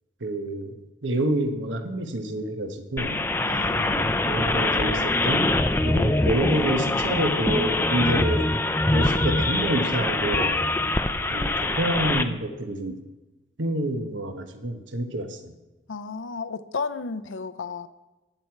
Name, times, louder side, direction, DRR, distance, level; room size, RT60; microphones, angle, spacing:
voice 1, 0.2-0.7 1.0-3.2 3.8-5.5 5.8-8.5 8.9-10.7 11.3-13.0 13.6-15.5, right 1 dB, 75° right, 7 dB, 1.1 m, -28 dB
sound 1, 3.0-12.2, left 2 dB, 10° left, 0.4 m, -24 dB
voice 2, 3.4-4.0 15.9-17.9, left 4 dB, 90° left, 13 dB, 0.7 m, -33 dB
13.5 x 7.9 x 4.7 m, 1.1 s
head